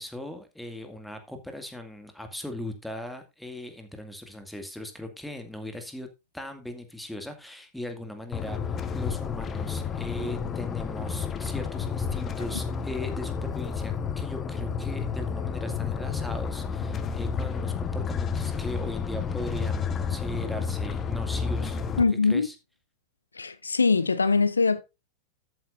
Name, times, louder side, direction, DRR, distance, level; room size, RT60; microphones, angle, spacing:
voice 1, 0.0-6.1 6.3-21.8 22.2-22.6, left 1 dB, 5° left, 2.2 m, -39 dB
sound 1, 8.3-22.0, left 6 dB, 25° left, 1.1 m, -31 dB
voice 2, 22.0-22.5 23.3-24.8, left 4 dB, 75° left, 0.7 m, -22 dB
13.5 x 8.4 x 2.6 m
figure-of-eight pair, 90°, 0 cm